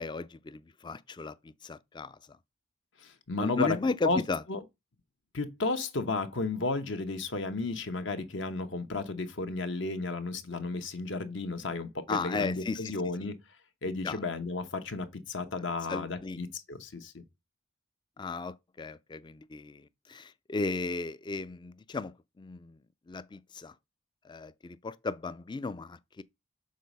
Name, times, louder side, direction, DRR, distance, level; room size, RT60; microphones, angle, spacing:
voice 1, 0.0-2.2 3.4-4.4 12.1-12.9 14.0-14.2 15.9-16.4 18.2-22.8 23.1-23.7 24.2-26.2, left 3 dB, 20° left, 0.4 m, -35 dB
voice 2, 3.0-3.8 4.0-4.2 4.5-4.6 5.3-13.4 13.8-17.2, left 3 dB, 65° left, 1.0 m, -33 dB
6.5 x 4.1 x 5.3 m
head